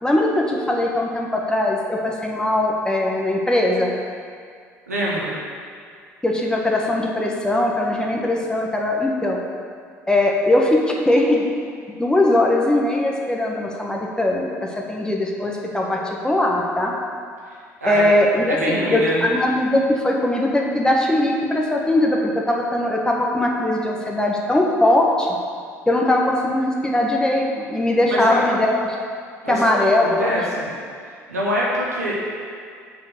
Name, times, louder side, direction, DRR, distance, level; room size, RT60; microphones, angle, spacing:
voice 1, 0.0-3.9 6.2-9.4 10.1-11.4 12.0-16.9 17.8-25.3 25.9-28.9 29.5-30.3, left 1 dB, 10° left, -1 dB, 1.4 m, -20 dB
voice 2, 4.9-5.3 17.8-18.1 18.5-19.2 28.1-28.5 29.4-30.7 31.3-32.2, equal, 85° right, -6 dB, 1.6 m, -24 dB
7.0 x 5.3 x 6.7 m, 2.1 s
figure-of-eight pair, 55°, 8 cm